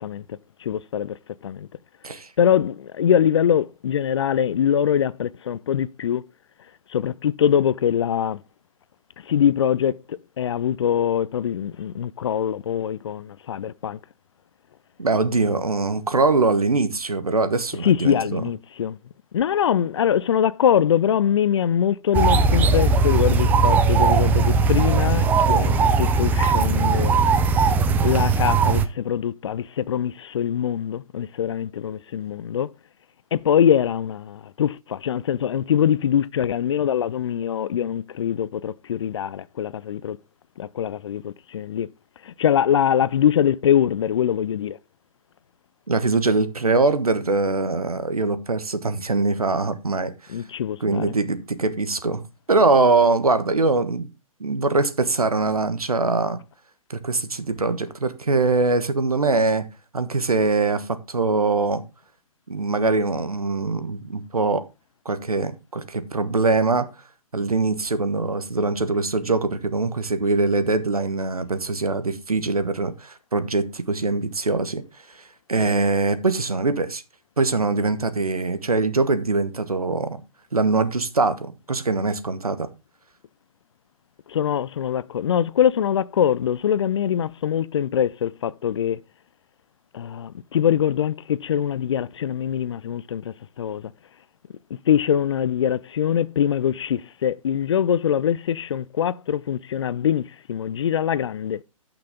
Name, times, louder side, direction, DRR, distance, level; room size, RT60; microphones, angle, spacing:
voice 1, 0.6-1.2 1.4-1.7 2.4-6.2 6.9-8.4 9.2-14.0 17.8-19.0 19.3-27.1 28.0-32.7 33.3-40.2 40.6-41.9 42.2-44.8 50.3-51.2 84.3-89.0 89.9-93.9 94.9-101.6, left 9 dB, 50° left, 0.5 m, -23 dB
voice 2, 15.0-18.4 45.9-50.1 50.8-54.1 54.4-56.4 56.9-59.7 59.9-61.8 62.5-64.6 65.0-66.9 67.3-74.8 75.5-77.0 77.4-80.2 80.5-82.7, right 3 dB, 85° right, 1.4 m, -22 dB
sound 1, 22.1-28.9, right 4 dB, 10° right, 0.5 m, -19 dB
13.5 x 5.9 x 3.7 m
figure-of-eight pair, 135°, 18 cm